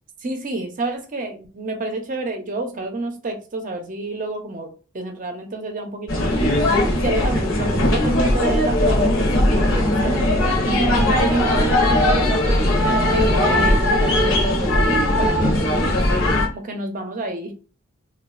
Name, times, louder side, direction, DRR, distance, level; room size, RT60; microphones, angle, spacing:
voice 1, 0.2-4.7 4.9-6.3 6.9-16.0 16.5-17.5, right 2 dB, 40° right, 4 dB, 0.6 m, -29 dB
sound 1, 6.1-16.5, left 1 dB, 70° left, 0.7 m, -19 dB
3.0 x 2.3 x 2.4 m, 0.36 s
head